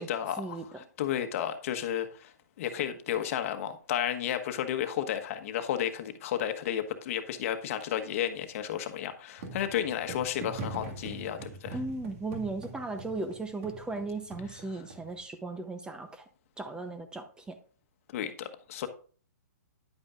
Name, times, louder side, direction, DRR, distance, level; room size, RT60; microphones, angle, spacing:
voice 1, 0.0-11.8 14.7-14.8 18.1-18.9, left 10 dB, 50° left, 1.2 m, -33 dB
sound 1, 9.4-15.2, right 3 dB, 50° right, 2.0 m, -43 dB
voice 2, 11.7-16.2 16.6-17.6, right 3 dB, 10° right, 0.7 m, -36 dB
10.5 x 8.6 x 2.5 m
hypercardioid pair, 135°, 10 cm